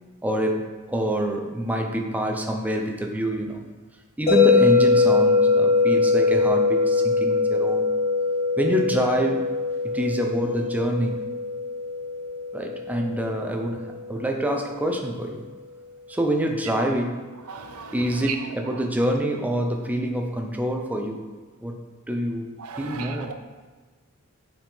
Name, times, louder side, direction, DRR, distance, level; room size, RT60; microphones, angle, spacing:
voice 1, 0.2-3.6 4.2-7.9 8.6-9.4 9.8-11.3 12.5-15.5 16.1-17.2 17.9-21.3 21.6-21.8 22.1-22.5 22.8-23.3, right 1 dB, 5° right, 2 dB, 0.5 m, -26 dB
sound 1, 4.3-14.3, left 4 dB, 30° left, 1.6 m, -22 dB
voice 2, 17.5-17.9 22.6-23.2, right 5 dB, 90° right, 7 dB, 0.6 m, -37 dB
8.6 x 4.3 x 3.5 m, 1.4 s
head